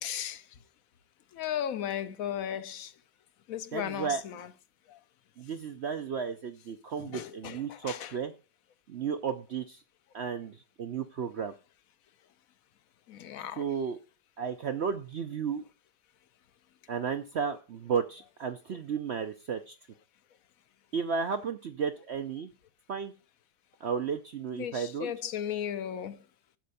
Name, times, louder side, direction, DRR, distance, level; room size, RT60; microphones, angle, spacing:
voice 1, 0.0-0.5 1.3-2.9 3.5-4.5 4.9-5.0 7.0-8.2 13.1-13.7 24.5-26.2, left 10 dB, 65° left, 1.0 m, -36 dB
voice 2, 3.7-4.2 5.4-8.3 8.9-9.8 10.1-11.5 13.6-14.0 14.4-15.6 16.9-19.8 20.9-22.5 22.9-23.1 23.8-25.1, right 6 dB, 65° right, 0.7 m, -33 dB
7.7 x 5.5 x 6.7 m
omnidirectional pair, 1.8 m